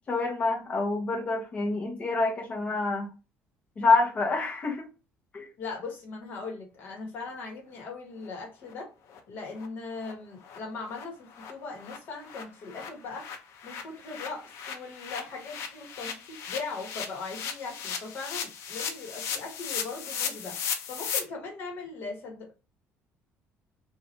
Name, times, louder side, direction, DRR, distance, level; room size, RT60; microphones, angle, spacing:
voice 1, 0.1-3.1 3.8-4.9 5.3-5.5, left 3 dB, 25° left, 0.8 m, -27 dB
voice 2, 5.6-8.9 9.3-13.3 13.6-20.6 20.9-22.6, left 4 dB, 50° left, 1.2 m, -39 dB
sound 1, 8.2-8.3 8.7-8.8 9.1-9.2 9.6-9.7 10.0-10.1 10.4-10.6 10.9-11.0 11.3-21.2, left 7 dB, 75° left, 0.6 m, -37 dB
3.1 x 2.4 x 2.7 m
cardioid pair, 165°, 5 cm